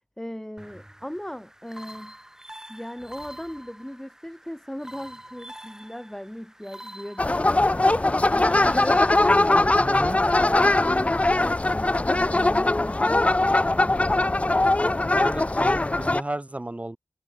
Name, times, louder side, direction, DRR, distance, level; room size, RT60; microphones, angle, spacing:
voice 1, 0.2-2.1 2.7-7.5 8.3-9.1 10.3-14.3, equal, 10° left, 2.8 m, -38 dB
sound 1, 0.6-9.6, right 1 dB, 10° right, 5.0 m, -45 dB
sound 2, 7.2-16.2, left 2 dB, 25° left, 0.4 m, -21 dB
voice 2, 9.3-10.2 15.2-17.0, right 1 dB, 30° right, 1.6 m, -33 dB
wide cardioid pair, 55°, 5 cm